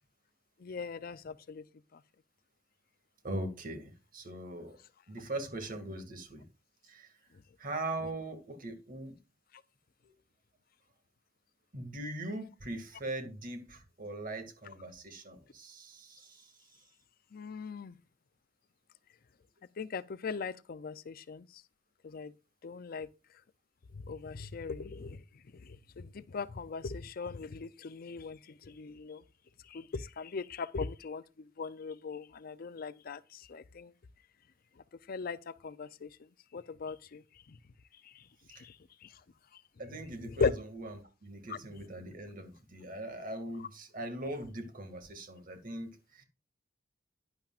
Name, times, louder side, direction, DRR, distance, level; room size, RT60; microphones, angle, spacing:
voice 1, 0.6-1.6 17.3-17.9 19.8-21.4 22.1-22.3 22.6-23.1 24.1-25.2 26.1-28.4 28.7-29.2 29.7-31.2 31.6-33.2 33.5-33.9 35.1-35.4 35.6-36.1 36.5-37.2 40.4-40.5, left 4 dB, 50° left, 0.5 m, -38 dB
voice 2, 3.2-4.8 5.1-6.5 6.8-7.1 7.6-9.1 10.0-10.2 11.7-16.8 38.5-38.7 39.8-46.2, right 1 dB, 45° right, 2.1 m, -41 dB
11.5 x 10.0 x 2.4 m
head